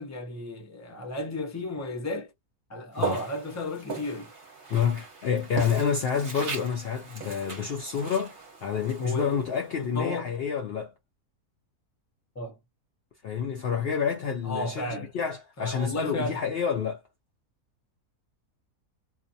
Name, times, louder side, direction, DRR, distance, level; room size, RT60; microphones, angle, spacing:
voice 1, 0.0-2.3 2.7-4.3 9.0-9.4 9.7-10.3 12.3-12.6 14.4-15.1 15.6-16.4, left 1 dB, 20° left, 0.5 m, -33 dB
Walk footsteps, 2.9-10.1, right 4 dB, 40° right, 1.0 m, -38 dB
voice 2, 4.7-10.9 13.2-17.0, left 7 dB, 85° left, 0.5 m, -28 dB
2.5 x 2.1 x 2.6 m
omnidirectional pair, 1.6 m